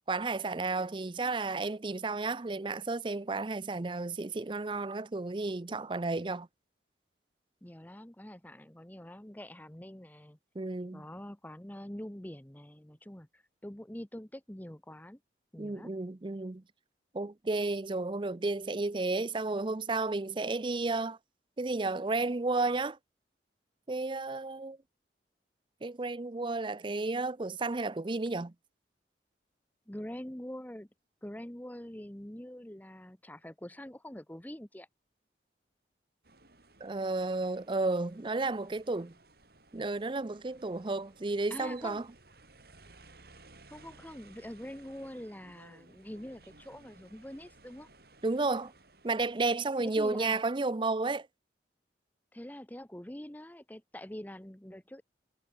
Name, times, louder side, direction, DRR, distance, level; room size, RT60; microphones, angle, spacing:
voice 1, 0.1-6.5 10.6-11.0 15.6-16.6 17.1-21.2 21.6-23.0 23.9-24.8 25.8-28.5 36.8-39.1 39.7-42.0 48.2-48.7 49.0-51.3, right 3 dB, 25° right, 0.5 m, -32 dB
voice 2, 7.6-10.4 10.9-15.2 15.5-15.9 29.9-30.9 31.2-34.9 41.5-42.0 43.7-47.9 49.8-50.4 52.3-55.0, left 1 dB, 10° left, 0.9 m, -45 dB
sound 1, 36.2-49.9, right 3 dB, 60° right, 7.2 m, -59 dB
head